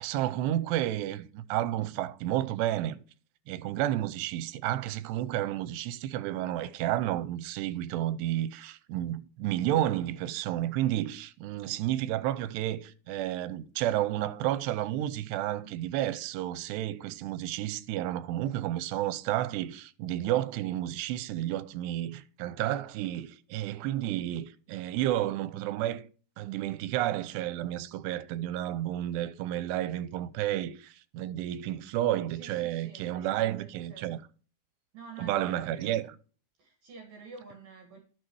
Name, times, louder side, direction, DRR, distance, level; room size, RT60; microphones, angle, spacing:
voice 1, 0.0-3.0 3.5-26.1 26.4-34.3 35.2-36.1, right 13 dB, 85° right, 2.8 m, -31 dB
voice 2, 32.3-34.1 34.9-36.0 36.6-38.0, right 5 dB, 60° right, 3.2 m, -48 dB
11.5 x 6.2 x 4.6 m
omnidirectional pair, 4.8 m